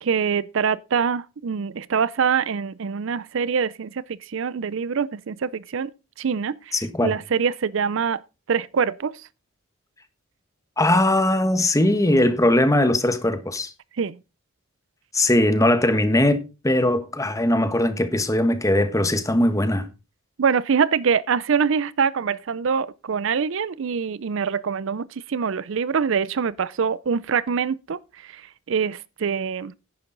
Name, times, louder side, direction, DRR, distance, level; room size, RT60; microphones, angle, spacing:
voice 1, 0.0-5.9 6.2-8.2 8.5-9.1 14.0-14.2 20.4-29.7, right 6 dB, 60° right, 0.5 m, -24 dB
voice 2, 6.7-7.1 10.8-13.7 15.1-19.9, left 1 dB, 15° left, 1.3 m, -20 dB
10.5 x 10.0 x 3.9 m
head